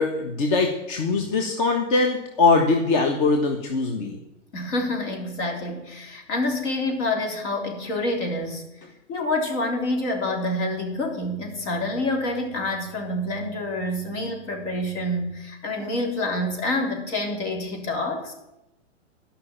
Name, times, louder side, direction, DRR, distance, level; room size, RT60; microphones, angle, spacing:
voice 1, 0.0-4.2, left 3 dB, 45° left, 3 dB, 1.5 m, -22 dB
voice 2, 4.5-8.6 9.1-18.3, left 1 dB, 65° left, 2 dB, 3.7 m, -27 dB
12.5 x 5.8 x 8.8 m, 0.91 s
hypercardioid pair, 135°, 37 cm